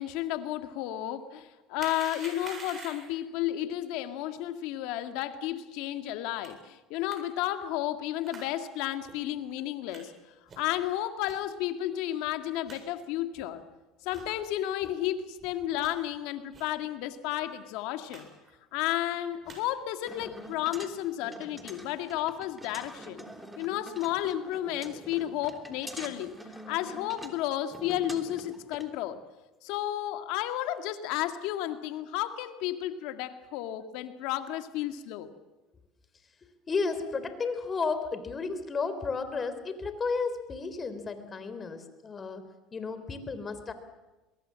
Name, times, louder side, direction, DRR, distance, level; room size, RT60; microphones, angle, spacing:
voice 1, 0.0-10.1 10.6-13.6 14.0-18.3 18.7-23.2 23.6-29.2 29.6-35.3, left 13 dB, 75° left, 8 dB, 1.8 m, -32 dB
sound 1, 1.8-3.2 6.4-6.5 7.1-7.2 8.2-8.5 9.0-9.1 9.9-10.0 10.5-10.7 11.2-11.4 11.9-12.0 12.3-12.4 12.7-12.8 13.3-13.5 14.1-14.3 14.8-14.9 15.4-15.9 16.5-16.7 17.0-17.1 17.4-17.6 18.1-18.2 18.5-18.9 19.3-19.6 20.2-20.4, right 4 dB, 35° right, 7.7 m, -46 dB
sound 2, 20.1-28.9, right 1 dB, 5° right, 3.3 m, -46 dB
voice 2, 36.7-42.5 42.7-43.7, left 4 dB, 30° left, 11 dB, 3.5 m, -33 dB
23.0 x 22.0 x 7.6 m, 1.1 s
supercardioid pair, 90°, 0 cm